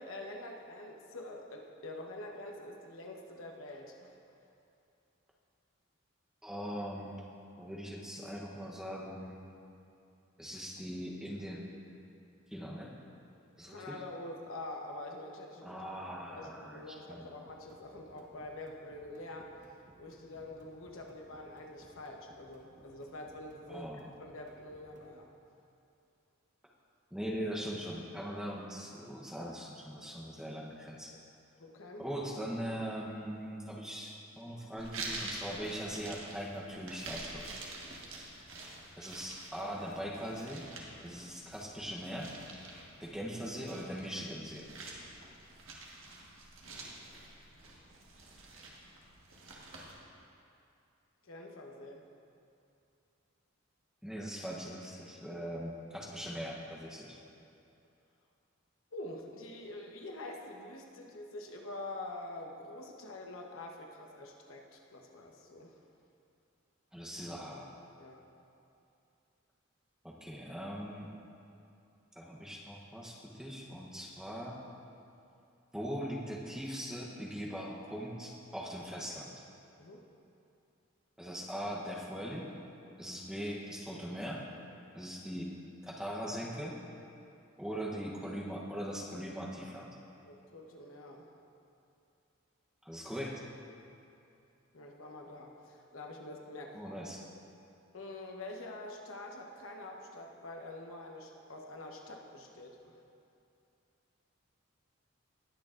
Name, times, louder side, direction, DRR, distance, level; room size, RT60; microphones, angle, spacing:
voice 1, 0.0-4.2 13.7-15.8 16.3-19.5 20.0-23.9 24.2-25.3 31.6-32.1 51.2-52.0 58.9-65.8 68.0-68.2 79.8-80.0 90.2-91.3 94.7-96.8 97.2-97.3 97.9-102.9, left 2 dB, 85° left, 1 dB, 1.0 m, -46 dB
voice 2, 6.4-7.2 7.6-9.5 10.4-11.7 12.5-12.9 13.6-14.0 15.6-17.2 23.7-24.0 27.1-31.1 32.0-37.6 39.0-40.6 41.0-42.3 43.0-44.7 54.0-57.2 66.9-67.7 70.0-71.1 72.2-74.6 75.7-79.4 81.2-82.5 83.0-84.5 84.9-85.5 85.8-86.8 87.6-89.9 92.8-93.4 96.7-97.2, equal, 5° right, -3 dB, 0.8 m, -41 dB
sound 1, 17.4-25.2, equal, 40° right, 1.1 m, -62 dB
sound 2, 34.8-49.9, right 2 dB, 80° right, 1.4 m, -47 dB
19.0 x 6.6 x 2.5 m, 2.6 s
head